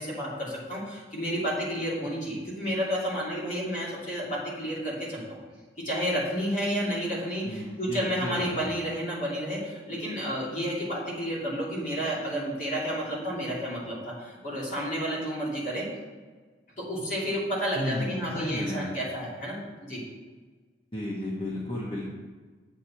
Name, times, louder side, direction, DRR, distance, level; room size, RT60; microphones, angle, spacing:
voice 1, 0.0-5.4 5.8-15.8 16.8-20.0, equal, 45° left, -6 dB, 2.9 m, -31 dB
voice 2, 7.4-8.7 17.7-18.9 20.9-22.1, left 1 dB, 30° left, -4 dB, 1.1 m, -33 dB
8.3 x 7.6 x 4.4 m, 1.4 s
head